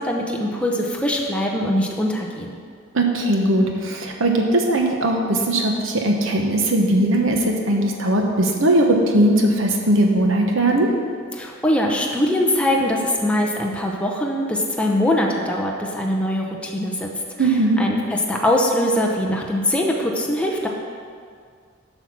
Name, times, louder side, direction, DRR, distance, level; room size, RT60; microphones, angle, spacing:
voice 1, 0.0-2.6 11.3-17.1 17.4-20.7, left 1 dB, 5° left, -1 dB, 0.7 m, -22 dB
voice 2, 2.9-10.9 17.4-17.8, right 1 dB, 70° right, 2 dB, 1.1 m, -19 dB
8.0 x 5.8 x 6.1 m, 2.1 s
head